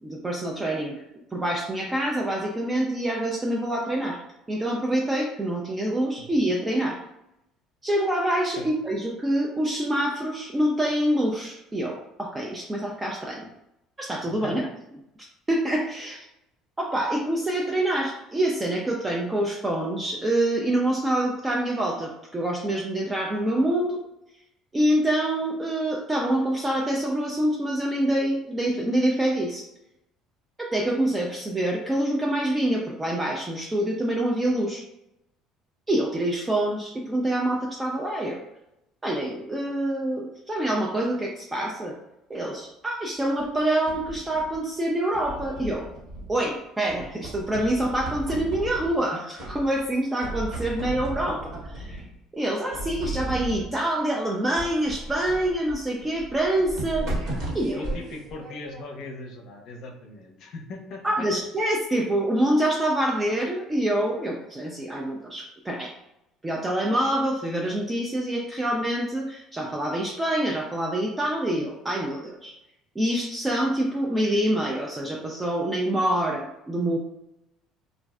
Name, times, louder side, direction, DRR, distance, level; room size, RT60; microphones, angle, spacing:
voice 1, 0.0-1.0 1.3-4.2 4.5-7.0 7.8-13.5 14.0-14.6 15.5-16.2 16.8-24.0 24.7-29.6 30.6-34.8 35.9-38.4 39.0-42.0 42.3-45.9 46.3-52.0 52.3-57.1 57.5-57.8 61.0-65.9 66.4-72.5 73.0-77.0, right 1 dB, 15° right, -1 dB, 0.4 m, -26 dB
sound 1, 43.4-44.6 45.1-46.5 46.9-49.1 49.4-49.9 50.2-52.2 52.7-53.8 54.6-59.1, right 2 dB, 65° right, 1.3 m, -35 dB
voice 2, 57.7-61.3, left 2 dB, 60° left, 2 dB, 0.6 m, -39 dB
3.1 x 2.4 x 2.3 m, 0.84 s
cardioid pair, 115°, 0 cm